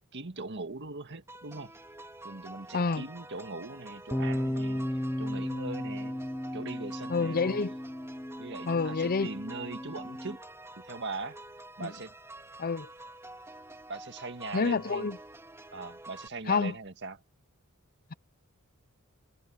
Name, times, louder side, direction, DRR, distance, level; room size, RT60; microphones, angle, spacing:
voice 1, 0.0-1.7 2.2-6.2 6.5-7.6 8.4-10.4 10.8-11.4 11.8-12.1 13.9-15.1 15.7-17.2, right 3 dB, 55° right, 1.9 m, -40 dB
sound 1, 1.3-16.3, right 2 dB, 10° right, 3.0 m, -48 dB
voice 2, 2.7-3.0 7.1-7.7 8.7-9.3 11.8-11.9 12.6-12.9 14.5-15.2 16.5-16.7, left 4 dB, 45° left, 0.6 m, -28 dB
sound 2, 4.1-10.4, equal, 10° left, 0.9 m, -35 dB
head